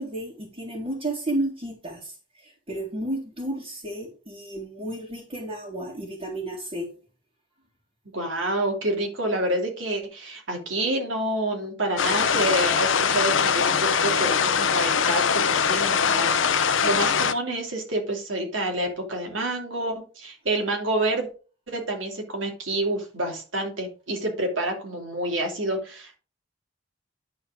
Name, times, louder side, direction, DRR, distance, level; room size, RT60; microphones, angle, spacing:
voice 1, 0.0-2.1 2.4-6.9, right 1 dB, 30° right, -4 dB, 2.2 m, -32 dB
voice 2, 8.1-21.3 21.7-26.2, right 1 dB, 80° right, 2 dB, 2.7 m, -28 dB
sound 1, 12.0-17.3, left 6 dB, 80° left, 0.7 m, -22 dB
10.5 x 4.4 x 5.0 m, 0.36 s
head